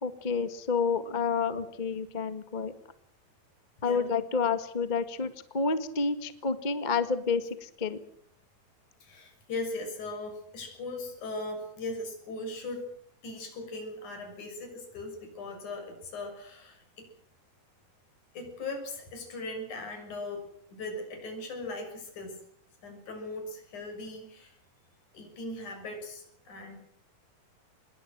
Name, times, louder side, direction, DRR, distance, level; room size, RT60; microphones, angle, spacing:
voice 1, 0.0-2.7 3.8-8.0, left 5 dB, 30° left, 10 dB, 0.8 m, -29 dB
voice 2, 9.0-12.9 13.2-17.1 18.3-22.4 22.8-24.6 25.1-26.8, left 2 dB, 50° left, 4 dB, 8.1 m, -39 dB
26.0 x 22.0 x 6.2 m, 0.64 s
omnidirectional pair, 4.3 m